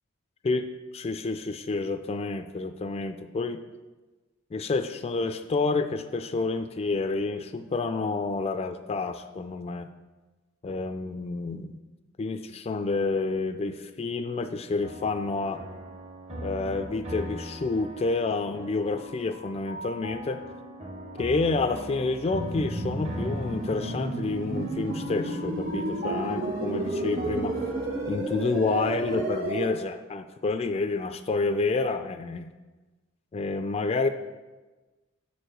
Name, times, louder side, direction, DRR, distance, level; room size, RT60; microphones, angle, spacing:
voice 1, 0.9-3.6 4.5-9.9 10.6-11.8 12.2-15.6 16.4-20.4 21.2-27.6 28.1-32.5 33.3-34.1, left 3 dB, 30° left, 9 dB, 0.3 m, -29 dB
sound 1, 14.8-28.2, equal, 35° right, 0.8 m, -40 dB
sound 2, 22.3-29.7, right 2 dB, 75° right, 2.6 m, -31 dB
6.8 x 4.7 x 6.5 m, 1.2 s
head